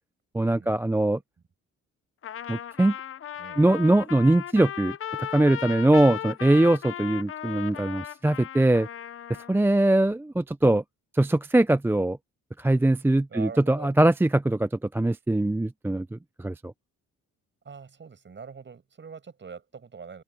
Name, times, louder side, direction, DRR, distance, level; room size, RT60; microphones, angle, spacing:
voice 1, 0.3-1.2 2.5-2.9 3.6-8.9 9.5-10.8 11.1-12.2 12.6-16.7, right 1 dB, 10° right, 0.5 m, -22 dB
Trumpet, 2.2-9.6, left 10 dB, 45° left, 0.8 m, -36 dB
voice 2, 13.3-13.9 17.6-20.2, right 5 dB, 40° right, 7.2 m, -43 dB
open air
cardioid pair, 90°, 30 cm